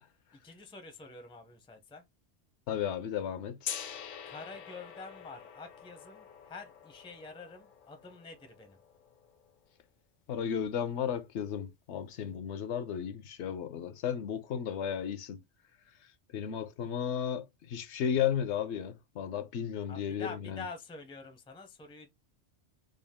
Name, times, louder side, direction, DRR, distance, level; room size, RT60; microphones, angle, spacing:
voice 1, 0.3-2.0 4.2-8.8 19.9-22.1, left 4 dB, 5° left, 0.4 m, -47 dB
voice 2, 2.7-3.8 10.3-15.4 16.3-20.6, left 8 dB, 80° left, 0.9 m, -34 dB
Gong, 3.6-9.6, left 8 dB, 60° left, 0.6 m, -45 dB
3.8 x 2.3 x 3.5 m
omnidirectional pair, 1.2 m